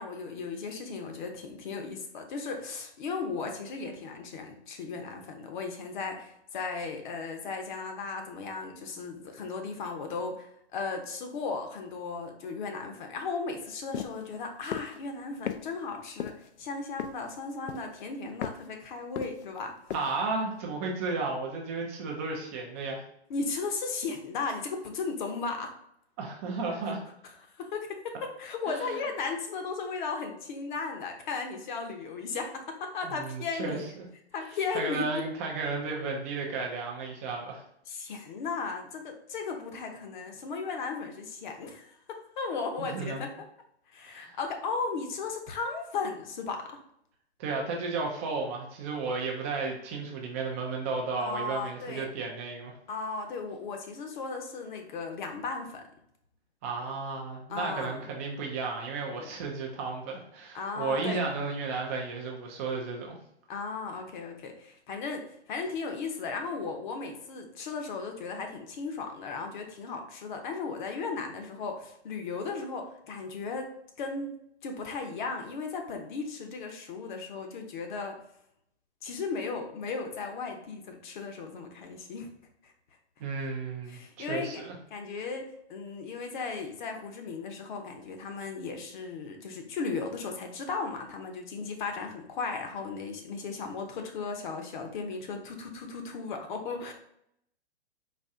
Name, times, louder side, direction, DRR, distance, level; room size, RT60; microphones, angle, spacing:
voice 1, 0.0-19.8 23.3-25.7 27.5-33.9 34.3-35.3 37.9-43.5 43.9-46.8 51.2-52.1 52.9-55.8 57.5-58.0 59.2-59.3 60.5-61.2 63.5-78.2 79.0-82.3 82.6-82.7 83.9-84.6 84.9-96.9, left 4 dB, 45° left, 4 dB, 0.8 m, -36 dB
sound 1, 13.9-14.2 14.7-15.0 15.5-15.6 16.2-16.5 17.0-17.3 17.7-18.0 18.4-18.7 19.2-19.6 19.9-20.1, left 9 dB, 75° left, 0.5 m, -35 dB
voice 2, 19.9-23.0 26.2-27.0 28.7-29.0 33.0-34.0 34.7-37.6 42.8-43.3 44.1-44.4 47.4-52.7 56.6-63.2 83.2-84.8, right 4 dB, 15° right, 0 dB, 0.3 m, -33 dB
4.2 x 2.4 x 3.5 m, 0.73 s
hypercardioid pair, 145°, 33 cm